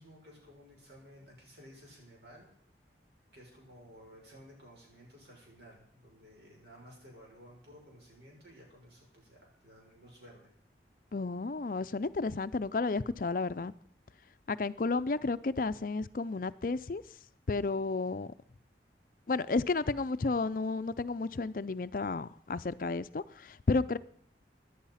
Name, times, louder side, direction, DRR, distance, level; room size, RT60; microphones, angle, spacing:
voice 1, 0.0-2.5 3.3-10.5, equal, 70° right, 6.6 m, -55 dB
voice 2, 11.1-13.7 14.5-17.0 17.5-18.3 19.3-24.0, left 3 dB, 50° left, 0.5 m, -32 dB
17.0 x 11.0 x 5.7 m
head